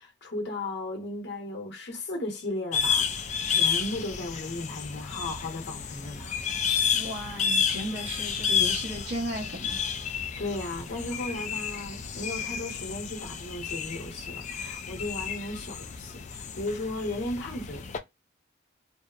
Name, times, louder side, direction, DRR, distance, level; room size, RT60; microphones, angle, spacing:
voice 1, 0.0-6.3 10.1-17.9, left 2 dB, 60° left, 0.9 m, -35 dB
sound 1, 2.7-18.0, left 6 dB, 35° left, 0.3 m, -31 dB
voice 2, 6.9-9.8, equal, 85° right, 1.0 m, -35 dB
2.7 x 2.0 x 2.4 m
head